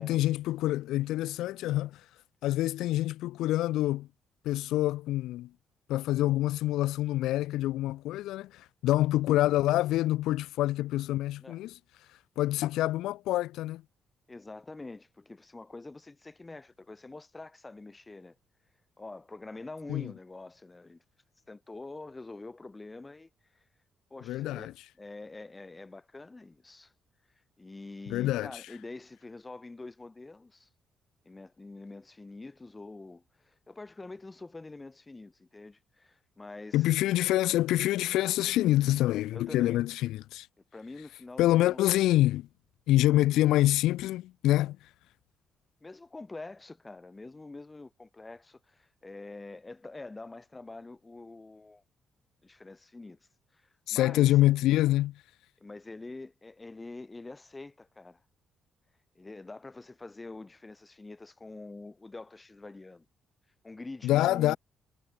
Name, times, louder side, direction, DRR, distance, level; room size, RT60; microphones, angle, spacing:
voice 1, 0.0-2.0 2.4-4.1 4.4-5.5 5.9-11.8 12.4-13.8 19.9-20.1 24.3-24.7 28.1-28.6 36.7-40.5 41.4-42.5 42.9-44.8 53.9-55.2 64.0-64.6, left 15 dB, 90° left, 1.3 m, -26 dB
voice 2, 14.3-18.3 19.0-21.0 21.5-23.6 24.1-26.9 27.6-30.7 31.2-37.0 39.3-39.8 40.7-41.8 45.8-51.8 52.4-53.2 53.5-54.3 55.6-58.2 59.1-63.1 63.6-64.6, left 3 dB, 20° left, 3.0 m, -45 dB
cardioid pair, 90°, 0 cm